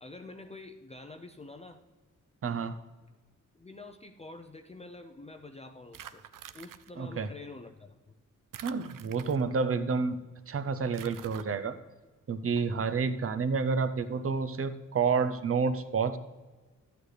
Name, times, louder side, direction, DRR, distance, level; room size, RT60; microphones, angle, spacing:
voice 1, 0.0-1.8 3.5-6.2 6.5-8.1, left 2 dB, 20° left, 5 dB, 0.5 m, -47 dB
voice 2, 2.4-2.7 7.0-7.3 8.6-10.2 10.5-11.8 12.3-16.2, right 5 dB, 45° right, 11 dB, 0.6 m, -29 dB
sound 1, 5.9-6.9 8.5-9.6 10.9-11.4, right 10 dB, 85° right, 0.5 m, -47 dB
13.0 x 8.7 x 3.3 m, 1.3 s
wide cardioid pair, 105°, 32 cm